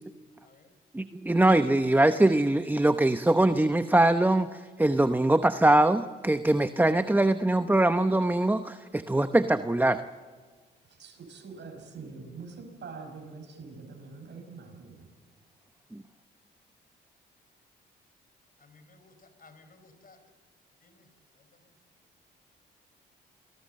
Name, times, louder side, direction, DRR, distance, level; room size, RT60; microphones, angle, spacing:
voice 1, 0.9-10.0 15.9-16.0, right 1 dB, 10° right, 0.9 m, -23 dB
voice 2, 10.9-15.1, right 4 dB, 60° right, 5.3 m, -44 dB
voice 3, 18.6-20.2 20.8-21.1 21.4-21.5, left 3 dB, 45° left, 4.4 m, -57 dB
27.5 x 19.0 x 7.6 m
supercardioid pair, 60°, 21 cm